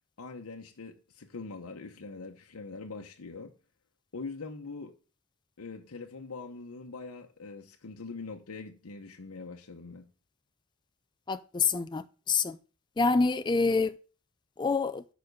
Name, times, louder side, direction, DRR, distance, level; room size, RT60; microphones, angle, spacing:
voice 1, 0.2-3.6 4.1-4.9 5.6-10.1, left 4 dB, 80° left, 0.9 m, -43 dB
voice 2, 11.3-12.6 13.0-13.9 14.6-15.0, left 4 dB, 20° left, 0.3 m, -27 dB
7.0 x 5.1 x 6.5 m
head